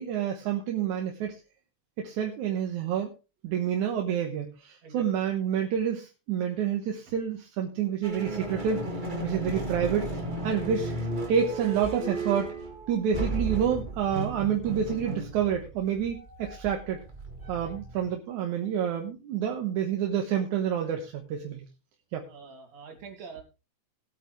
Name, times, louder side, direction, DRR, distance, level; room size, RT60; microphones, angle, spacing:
voice 1, 0.0-1.4 2.0-3.1 3.4-8.8 9.2-10.9 11.3-12.5 12.9-17.0 17.5-21.6 22.1-22.3, right 8 dB, 80° right, 3 dB, 2.6 m, -28 dB
sound 1, 8.0-18.1, right 2 dB, 20° right, 1.7 m, -35 dB
voice 2, 22.3-23.4, right 5 dB, 60° right, 2 dB, 3.7 m, -45 dB
20.0 x 8.4 x 3.1 m, 0.29 s
omnidirectional pair, 3.4 m